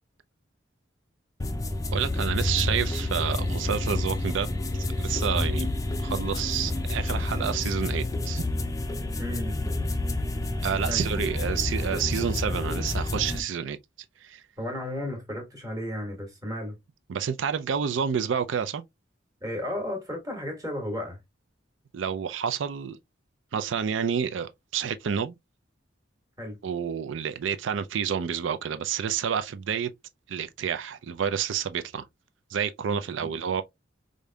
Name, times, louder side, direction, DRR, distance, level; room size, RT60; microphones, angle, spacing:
sound 1, 1.4-13.4, left 2 dB, 20° left, 0.4 m, -29 dB
voice 1, 1.9-5.7 6.0-8.4 10.6-13.8 14.2-14.4 17.1-18.8 21.9-23.0 23.5-25.4 26.6-29.9 30.3-32.1 32.5-33.6, right 7 dB, 75° right, 0.4 m, -29 dB
voice 2, 9.2-9.6 10.9-11.0 14.6-16.7 19.4-21.2 26.4-26.6, left 1 dB, 20° right, 1.3 m, -33 dB
4.9 x 2.6 x 2.2 m
head